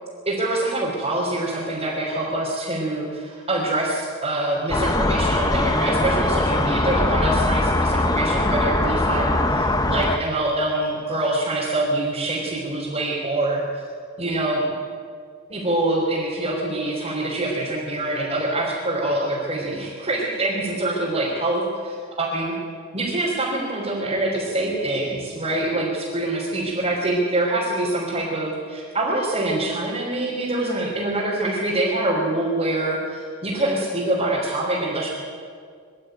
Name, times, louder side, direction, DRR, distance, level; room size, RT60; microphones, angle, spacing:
voice 1, 0.3-13.9 14.2-14.6 15.5-22.5 22.9-35.1, right 1 dB, 30° right, -7 dB, 3.8 m, -25 dB
sound 1, 4.7-10.2, left 2 dB, 15° left, 0.9 m, -21 dB
23.5 x 12.0 x 9.2 m, 2.1 s
head